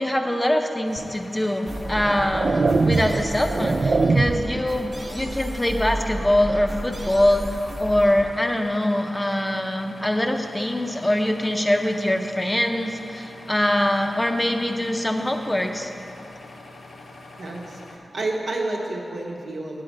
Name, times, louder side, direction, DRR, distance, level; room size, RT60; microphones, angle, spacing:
voice 1, 0.0-2.6 2.8-15.9, left 1 dB, 15° left, 4 dB, 0.6 m, -23 dB
sound 1, 0.8-18.0, left 2 dB, 85° left, 0.7 m, -44 dB
sound 2, 1.0-1.1 1.8-4.6, right 3 dB, 55° right, 0.3 m, -22 dB
sound 3, 1.6-8.3, right 1 dB, 30° right, 0.8 m, -34 dB
voice 2, 17.4-19.8, right 2 dB, 80° right, -2 dB, 1.2 m, -30 dB
8.7 x 4.9 x 7.7 m, 2.6 s
wide cardioid pair, 95°, 0 cm